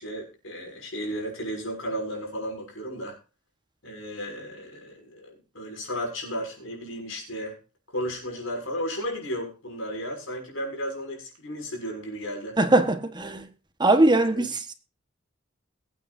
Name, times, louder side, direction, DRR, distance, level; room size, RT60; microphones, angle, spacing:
voice 1, 0.0-3.2 3.8-7.6 7.9-12.6 14.3-14.5, equal, 85° left, 6.5 m, -34 dB
voice 2, 12.6-13.5 13.8-14.7, right 2 dB, 20° right, 1.4 m, -21 dB
22.5 x 8.8 x 2.7 m
head